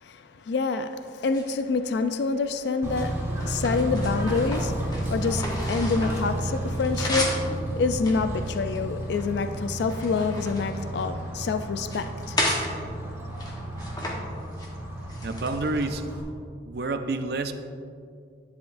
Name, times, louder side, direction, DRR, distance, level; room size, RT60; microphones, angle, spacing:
voice 1, 0.0-7.4 7.7-12.4, left 4 dB, 70° left, 0.3 m, -27 dB
sound 1, 1.3-2.1 2.8-6.3 6.6-7.5 8.0-9.3 9.7-11.4 11.8-12.7 13.3-14.2 14.4-14.7 15.1-16.0, left 1 dB, 20° left, 1.0 m, -33 dB
Bird / Train, 2.8-16.2, right 1 dB, 15° right, 1.1 m, -32 dB
voice 2, 15.2-16.0 16.6-17.5, right 3 dB, 60° right, 0.4 m, -28 dB
11.0 x 7.3 x 2.5 m
head